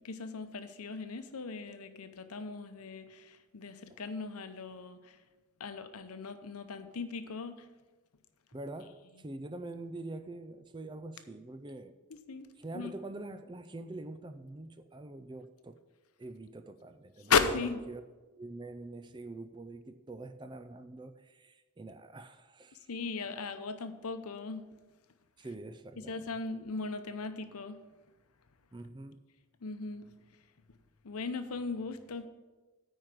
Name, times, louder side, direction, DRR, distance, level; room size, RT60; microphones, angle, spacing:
voice 1, 0.0-5.2 5.6-7.7 12.1-12.5 12.7-12.9 17.2-17.8 22.9-24.6 26.1-27.8 29.6-30.1 31.0-32.3, left 5 dB, 85° left, 9 dB, 0.7 m, -36 dB
voice 2, 8.5-12.0 12.6-15.8 16.2-17.5 17.9-18.0 18.4-22.9 25.4-26.2 28.7-29.2, right 2 dB, 20° right, 10 dB, 0.4 m, -45 dB
9.4 x 4.6 x 7.5 m, 1.2 s
head